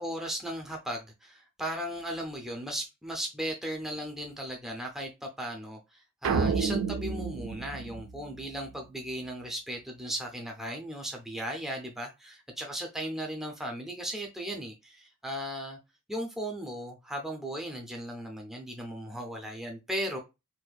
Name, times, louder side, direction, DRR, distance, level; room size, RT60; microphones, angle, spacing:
voice 1, 0.0-15.8 16.1-20.2, equal, ahead, 0.5 m, -36 dB
sound 1, 6.2-8.7, right 5 dB, 65° right, 0.4 m, -30 dB
4.1 x 2.5 x 2.3 m
head